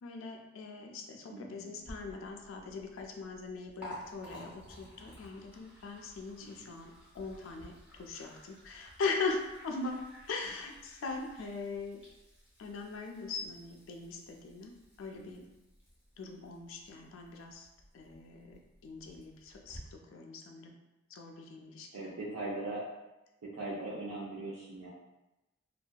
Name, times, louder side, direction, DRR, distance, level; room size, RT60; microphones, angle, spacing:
voice 1, 0.0-10.0 10.3-12.0 12.6-15.4 16.2-17.7 17.9-20.7 21.1-22.1, left 4 dB, 70° left, 2 dB, 0.3 m, -40 dB
voice 2, 1.3-1.9 6.4-6.7 15.1-15.4 21.9-22.8 23.4-24.9, right 2 dB, 90° right, -8 dB, 0.5 m, -40 dB
Liquid, 1.8-19.8, equal, 5° right, 0.6 m, -55 dB
2.6 x 2.3 x 2.2 m, 0.98 s
head